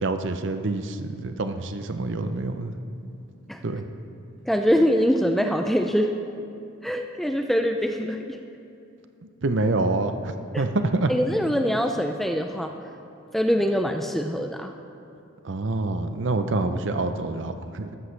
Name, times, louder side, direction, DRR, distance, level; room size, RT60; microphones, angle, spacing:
voice 1, 0.0-2.7 3.6-3.9 9.4-11.1 15.4-18.0, right 2 dB, 60° right, 8 dB, 0.6 m, -26 dB
voice 2, 4.5-6.1 6.8-8.4 10.5-10.6 11.1-12.7 13.3-14.7, equal, ahead, 4 dB, 0.3 m, -23 dB
13.5 x 13.5 x 3.3 m, 2.7 s
head